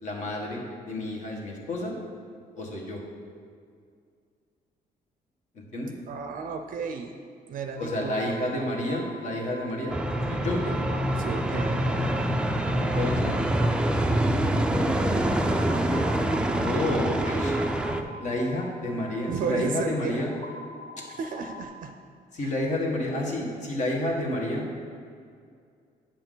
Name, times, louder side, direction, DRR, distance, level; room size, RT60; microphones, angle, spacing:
voice 1, 0.0-2.0 2.5-3.0 5.5-5.9 7.8-10.0 10.3-10.6 12.7-13.4 16.5-17.5 18.2-20.3 22.3-24.7, left 1 dB, 50° left, -1 dB, 1.6 m, -30 dB
voice 2, 6.1-7.1 7.5-8.7 10.6-10.8 11.1-11.8 19.3-20.2 21.1-21.9, right 5 dB, 60° right, 6 dB, 0.5 m, -33 dB
sound 1, 7.8-21.6, right 1 dB, 25° left, 0.7 m, -44 dB
sound 2, 9.9-18.0, right 1 dB, 5° right, 0.4 m, -25 dB
8.7 x 6.9 x 3.9 m, 2.2 s
cardioid pair, 130°, 16 cm